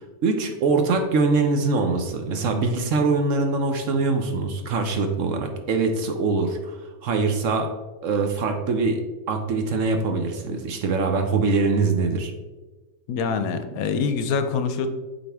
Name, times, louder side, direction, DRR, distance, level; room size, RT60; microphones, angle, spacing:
voice 1, 0.2-7.7 8.0-9.0 9.3-12.3, right 3 dB, 65° right, 5 dB, 0.9 m, -23 dB
voice 2, 13.1-14.9, left 5 dB, 75° left, 9 dB, 1.0 m, -25 dB
8.0 x 4.2 x 3.4 m, 1.2 s
omnidirectional pair, 1.6 m